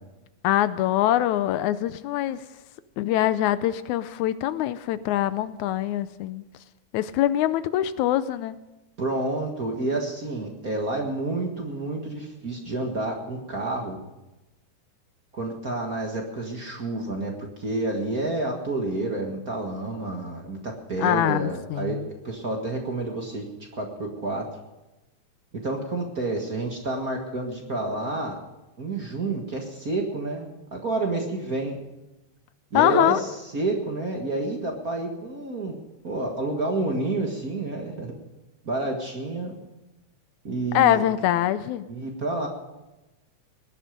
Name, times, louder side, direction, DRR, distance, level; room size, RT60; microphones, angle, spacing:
voice 1, 0.4-2.4 3.0-6.4 6.9-8.6 21.0-22.1 32.7-33.2 40.7-41.9, left 12 dB, 80° left, 14 dB, 2.0 m, -23 dB
voice 2, 9.0-14.0 15.3-17.3 17.6-23.5 23.7-24.5 25.6-28.4 28.8-31.8 32.7-35.7 36.0-38.1 38.6-39.6 40.4-41.1 41.9-42.5, right 2 dB, 35° right, 1 dB, 1.7 m, -29 dB
19.0 x 11.0 x 5.2 m, 1.0 s
omnidirectional pair, 3.5 m